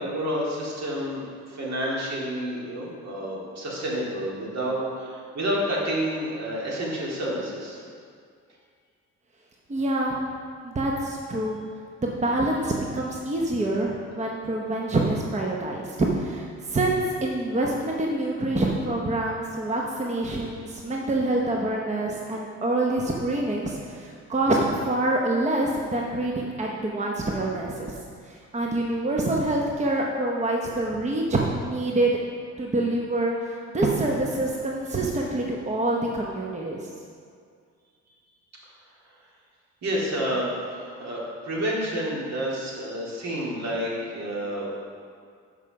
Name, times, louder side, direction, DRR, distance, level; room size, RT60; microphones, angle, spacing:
voice 1, 0.0-7.8 39.8-44.7, equal, 60° right, -4 dB, 2.2 m, -29 dB
voice 2, 9.7-10.2 10.6-11.6 12.0-28.0 28.2-32.1 32.6-36.9, right 2 dB, 25° right, -1 dB, 0.8 m, -26 dB
7.1 x 4.9 x 5.8 m, 2.2 s
cardioid pair, 90°, 30 cm